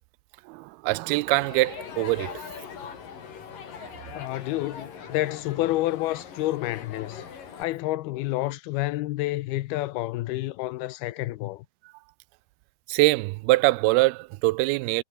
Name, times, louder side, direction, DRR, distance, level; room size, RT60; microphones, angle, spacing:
voice 1, 0.5-2.4 3.8-3.9 12.9-15.0, right 21 dB, 85° right, 2.4 m, -23 dB
Crowd, 1.3-7.6, left 7 dB, 60° left, 5.0 m, -41 dB
voice 2, 4.1-7.2 7.6-11.7, left 17 dB, 80° left, 2.7 m, -29 dB
omnidirectional pair, 4.5 m